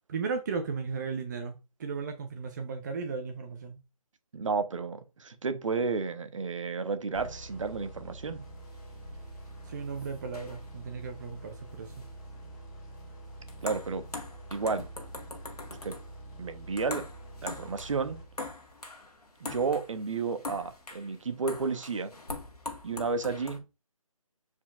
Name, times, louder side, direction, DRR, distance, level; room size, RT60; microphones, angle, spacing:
voice 1, 0.1-3.8 9.7-12.0, right 5 dB, 30° right, 0.7 m, -35 dB
voice 2, 4.3-8.4 13.6-14.0 14.5-14.9 15.7-16.0 16.4-17.0 17.4-18.2 19.4-22.1 22.8-23.6, right 4 dB, 55° right, 1.0 m, -32 dB
sound 1, 7.1-18.8, right 1 dB, 15° left, 1.6 m, -46 dB
sound 2, 8.4-23.6, left 2 dB, 85° left, 1.6 m, -44 dB
8.1 x 4.7 x 2.5 m
figure-of-eight pair, 155°, 19 cm